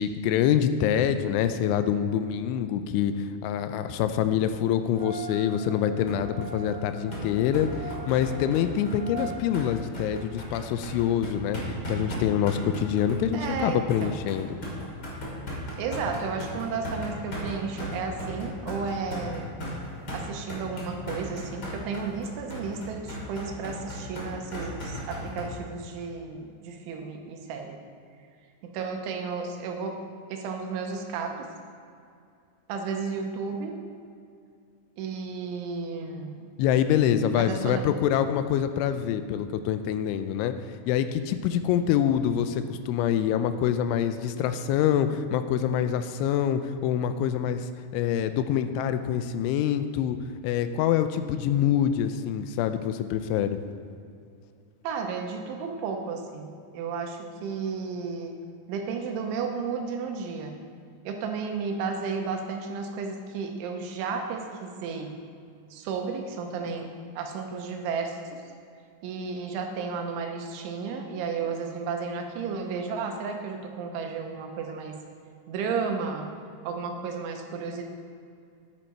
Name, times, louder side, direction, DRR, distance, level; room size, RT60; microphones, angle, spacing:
voice 1, 0.0-14.6 36.6-40.5 40.9-50.2 50.4-53.6, left 9 dB, 85° left, 10 dB, 2.9 m, -26 dB
sound 1, 4.9-9.4, right 4 dB, 55° right, 1.7 m, -42 dB
sound 2, 6.1-25.5, equal, 40° left, 1.5 m, -36 dB
voice 2, 13.3-14.1 15.8-19.5 20.1-27.8 28.6-30.0 30.3-31.5 32.7-33.8 35.0-36.5 37.4-37.8 54.8-58.3 58.7-60.6 61.1-65.2 65.7-68.4 69.0-75.0 75.5-76.4 76.6-77.8, right 5 dB, 85° right, 3 dB, 3.3 m, -33 dB
10.5 x 9.0 x 4.5 m, 2.4 s
omnidirectional pair, 5.5 m